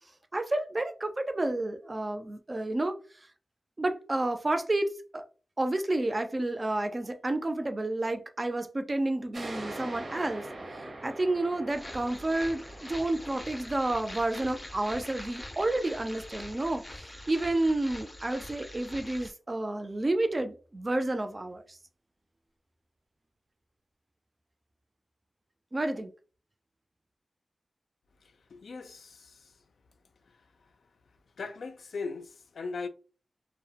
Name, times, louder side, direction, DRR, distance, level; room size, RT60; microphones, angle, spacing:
voice 1, 0.3-2.9 3.8-5.2 5.6-10.5 10.7-21.8 25.7-26.1, right 2 dB, 35° right, 0.4 m, -30 dB
sound 1, 9.3-16.5, right 2 dB, 80° right, 0.7 m, -44 dB
sound 2, 11.7-19.3, left 1 dB, 25° left, 0.5 m, -44 dB
voice 2, 28.5-29.5 31.4-32.9, left 4 dB, 90° left, 0.3 m, -39 dB
2.3 x 2.0 x 2.7 m
wide cardioid pair, 80°, 0 cm